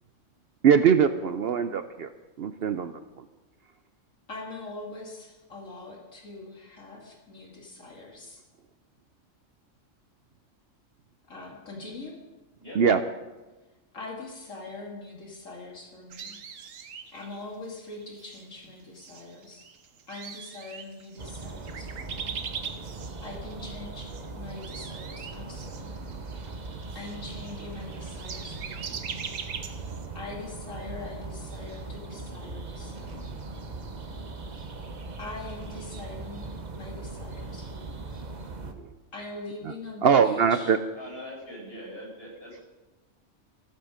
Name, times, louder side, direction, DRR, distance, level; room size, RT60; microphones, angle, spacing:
voice 1, 0.6-2.1 2.4-3.2 12.7-13.0 38.7-38.9 40.0-40.8, right 7 dB, 60° right, 10 dB, 0.8 m, -22 dB
voice 2, 4.3-8.4 11.3-12.2 13.9-16.4 17.1-19.7 20.1-22.3 23.2-25.9 26.9-29.0 30.1-33.4 35.2-38.1 39.1-40.7, left 2 dB, 80° left, -1 dB, 2.8 m, -42 dB
sound 1, 16.1-17.4 17.9-18.4 19.0-24.2 24.5-30.1, right 7 dB, 85° right, 1.4 m, -40 dB
sound 2, 21.2-38.7, right 3 dB, 35° right, 1.1 m, -39 dB
voice 3, 41.0-42.6, equal, 50° left, -3 dB, 5.7 m, -42 dB
14.5 x 12.5 x 5.1 m, 1.1 s
omnidirectional pair, 1.3 m